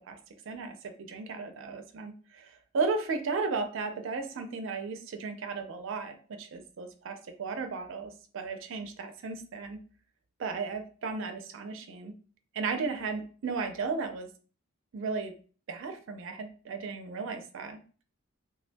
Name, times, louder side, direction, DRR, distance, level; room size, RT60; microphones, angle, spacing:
voice 1, 0.5-9.8 10.4-12.1 12.5-14.3 14.9-15.3 15.7-17.8, right 4 dB, 60° right, 6 dB, 0.4 m, -35 dB
3.3 x 2.2 x 2.5 m, 0.39 s
head